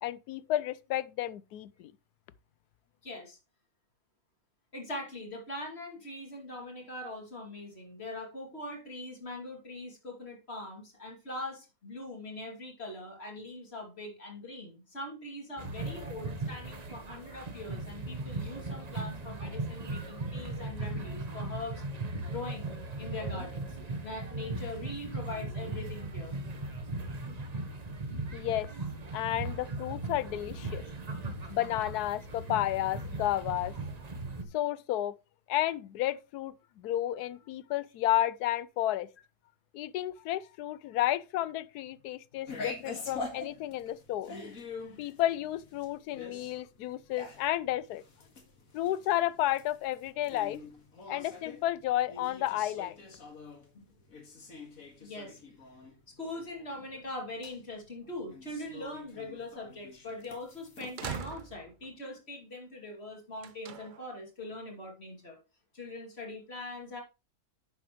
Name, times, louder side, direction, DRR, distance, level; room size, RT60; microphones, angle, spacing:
voice 1, 0.0-1.9 28.3-28.7 29.1-30.8 31.5-33.7 34.5-35.1 35.5-39.1 39.7-44.3 45.0-48.0 48.7-50.6 51.1-53.0, left 13 dB, 80° left, 1.1 m, -32 dB
voice 2, 3.0-3.4 4.7-21.8 22.3-22.7 23.0-26.3 42.3-42.4 53.7-53.9 55.0-55.4 56.1-65.4 65.7-67.0, left 2 dB, 40° left, 2.8 m, -42 dB
sound 1, 15.6-34.4, right 2 dB, 30° right, 0.9 m, -38 dB
sound 2, 42.5-61.2, left 3 dB, 60° left, 2.2 m, -45 dB
sound 3, 60.1-60.2 61.0-61.9 63.4-64.1, right 7 dB, 85° right, 0.4 m, -41 dB
10.0 x 7.3 x 3.1 m
omnidirectional pair, 1.7 m